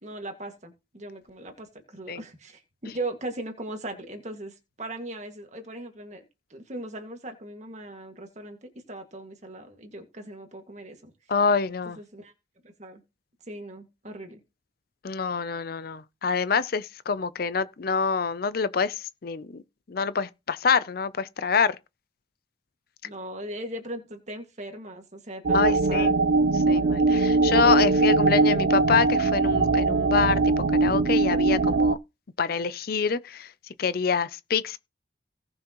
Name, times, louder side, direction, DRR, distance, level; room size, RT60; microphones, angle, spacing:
voice 1, 0.0-6.2 6.5-11.1 11.9-12.3 12.6-13.0 13.5-14.4 23.0-26.2, right 1 dB, 40° right, 2.0 m, -39 dB
voice 2, 11.3-12.0 15.0-19.6 19.9-21.8 25.5-26.1 26.7-32.0 32.4-33.5 33.8-34.8, left 5 dB, 50° left, 0.5 m, -26 dB
sound 1, 25.4-31.9, right 3 dB, 55° right, 0.4 m, -21 dB
18.0 x 6.1 x 3.0 m
head